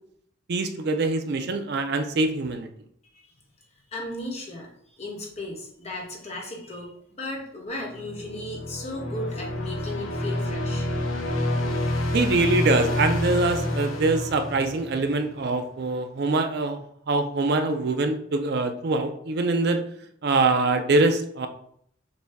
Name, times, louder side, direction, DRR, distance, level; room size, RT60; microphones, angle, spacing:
voice 1, 0.5-2.7 12.1-16.8 17.1-19.8 20.2-21.5, right 3 dB, 55° right, 7 dB, 0.4 m, -24 dB
voice 2, 3.9-10.9, left 1 dB, 30° left, -1 dB, 1.1 m, -36 dB
sound 1, 7.9-15.2, left 1 dB, 75° left, 0.9 m, -28 dB
6.6 x 2.3 x 3.5 m, 0.67 s
head